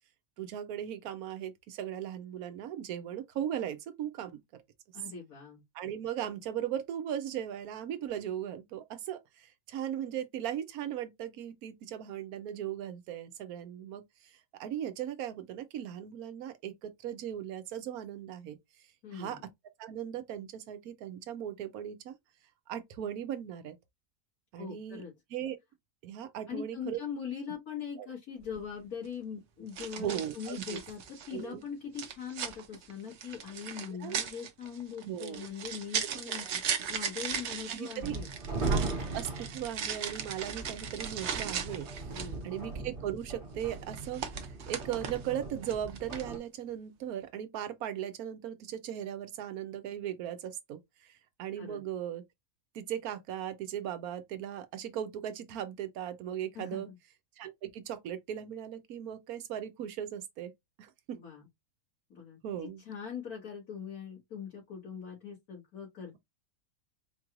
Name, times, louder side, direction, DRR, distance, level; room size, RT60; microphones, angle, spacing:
voice 1, 0.4-4.6 5.7-18.6 19.1-19.4 19.8-22.2 22.7-23.8 24.5-25.0 25.3-25.6 26.0-27.0 28.0-28.1 30.0-30.8 31.3-31.6 33.9-34.2 35.0-35.5 36.1-36.6 37.7-38.2 38.5-38.8 39.1-42.2 42.4-52.2 52.7-56.9 57.4-60.5 60.8-61.2 62.4-62.8, right 10 dB, 80° right, 1.1 m, -38 dB
voice 2, 4.9-5.6 19.0-19.5 24.6-25.1 26.5-31.0 31.3-38.3 42.1-42.5 51.6-51.8 56.5-57.0 61.1-61.4 62.1-66.2, left 7 dB, 80° left, 2.3 m, -41 dB
sound 1, 28.4-28.6 29.7-31.4 32.0-42.4 43.6-45.3 45.6-46.3, right 7 dB, 60° right, 0.9 m, -38 dB
sound 2, 38.0-46.4, right 3 dB, 40° right, 1.3 m, -38 dB
4.5 x 3.0 x 2.4 m
omnidirectional pair, 1.6 m